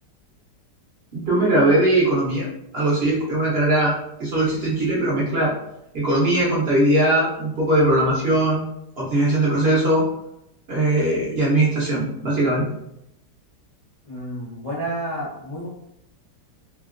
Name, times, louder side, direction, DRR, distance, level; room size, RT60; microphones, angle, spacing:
voice 1, 1.1-2.5 2.7-5.5 5.9-8.6 9.0-10.1 10.7-12.6, right 1 dB, 55° right, -5 dB, 0.7 m, -20 dB
voice 2, 14.1-15.7, right 1 dB, 80° left, -9 dB, 0.3 m, -30 dB
2.8 x 2.7 x 2.4 m, 0.79 s
omnidirectional pair, 1.8 m